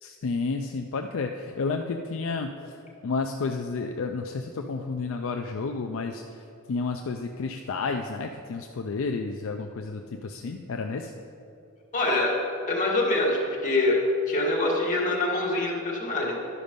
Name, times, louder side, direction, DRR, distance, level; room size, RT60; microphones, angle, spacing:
voice 1, 0.0-2.5 3.0-6.4 6.7-11.1, left 4 dB, 65° left, 4 dB, 0.4 m, -31 dB
voice 2, 11.9-12.3 12.7-14.0 14.3-16.4, left 2 dB, 35° left, -4 dB, 1.7 m, -25 dB
11.0 x 5.2 x 5.2 m, 2.6 s
head